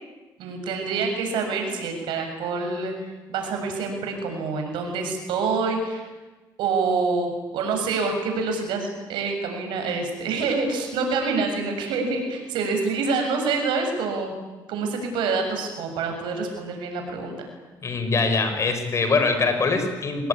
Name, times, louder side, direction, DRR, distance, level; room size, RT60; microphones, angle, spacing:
voice 1, 0.4-2.9 3.3-6.0 6.6-14.4 14.7-17.3, right 4 dB, 85° right, 4 dB, 7.1 m, -26 dB
voice 2, 17.8-20.3, left 4 dB, 40° left, 7 dB, 5.2 m, -23 dB
26.0 x 20.0 x 9.9 m, 1.2 s
cardioid pair, 105°, 8 cm